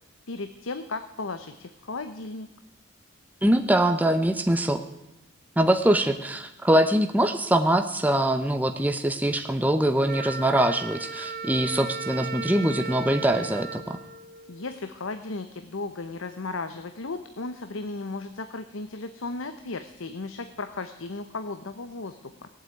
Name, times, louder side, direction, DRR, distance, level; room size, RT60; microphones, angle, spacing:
voice 1, 0.3-2.5 14.5-22.5, left 3 dB, 80° left, 9 dB, 0.9 m, -35 dB
voice 2, 3.4-4.8 5.6-14.0, right 1 dB, 10° right, 7 dB, 0.8 m, -23 dB
Wind instrument woodwind instrument, 10.1-14.9, right 5 dB, 45° right, 1.1 m, -36 dB
18.5 x 8.0 x 9.2 m, 0.93 s
head